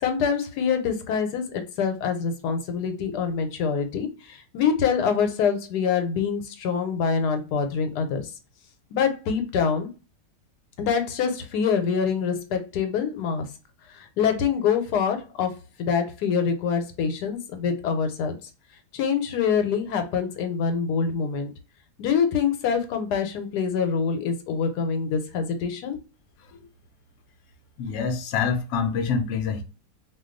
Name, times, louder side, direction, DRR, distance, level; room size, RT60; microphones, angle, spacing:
voice 1, 0.0-8.3 8.9-9.9 10.8-13.5 13.9-15.5 15.8-18.4 18.9-21.5 22.0-26.0, left 6 dB, 80° left, 1.2 m, -25 dB
voice 2, 27.8-29.6, left 6 dB, 65° left, 0.8 m, -26 dB
2.5 x 2.3 x 3.7 m
omnidirectional pair, 1.7 m